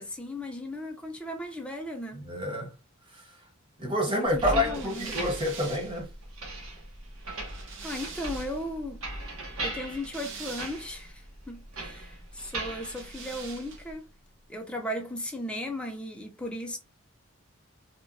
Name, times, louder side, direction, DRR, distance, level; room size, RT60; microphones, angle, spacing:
voice 1, 0.0-2.2 4.1-5.3 7.8-9.0 9.6-14.1 14.5-16.8, left 1 dB, 5° left, 0.6 m, -36 dB
voice 2, 2.1-2.7 3.1-3.4 3.8-6.1, left 1 dB, 25° right, 1.0 m, -28 dB
sound 1, 4.2-13.9, right 1 dB, 85° right, 1.0 m, -39 dB
sound 2, 4.6-8.7 9.7-11.1 12.7-14.0, right 5 dB, 60° right, 0.7 m, -45 dB
2.9 x 2.1 x 2.5 m
head